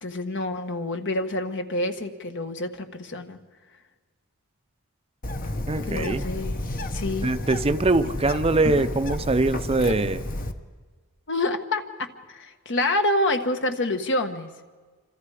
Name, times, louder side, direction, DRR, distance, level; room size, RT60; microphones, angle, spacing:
voice 1, 0.0-3.4 5.8-6.6 6.9-7.3 11.3-14.5, left 1 dB, 60° left, 7 dB, 1.5 m, -27 dB
Bird, 5.2-10.5, left 1 dB, 40° left, 1.2 m, -31 dB
voice 2, 5.7-6.2 7.2-10.2, right 2 dB, 25° right, 10 dB, 0.7 m, -23 dB
27.5 x 26.0 x 5.0 m, 1.4 s
head